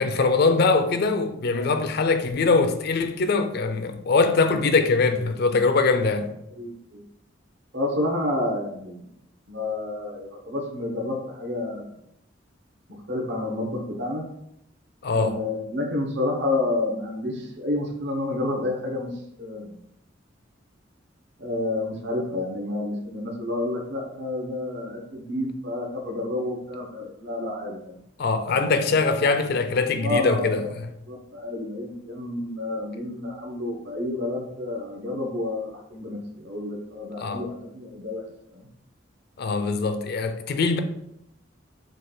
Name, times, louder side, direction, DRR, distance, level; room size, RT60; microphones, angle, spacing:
voice 1, 0.0-6.3 15.0-15.4 28.2-30.8 37.2-37.4 39.4-40.8, left 4 dB, 55° left, 0.4 m, -22 dB
voice 2, 6.6-7.0 7.7-9.1 9.5-11.9 13.1-14.2 15.1-19.1 19.4-19.8 21.4-27.9 28.5-29.0 30.0-30.7 31.1-38.2 38.5-38.7, left 2 dB, 65° right, 1.0 m, -29 dB
5.2 x 2.3 x 3.9 m
head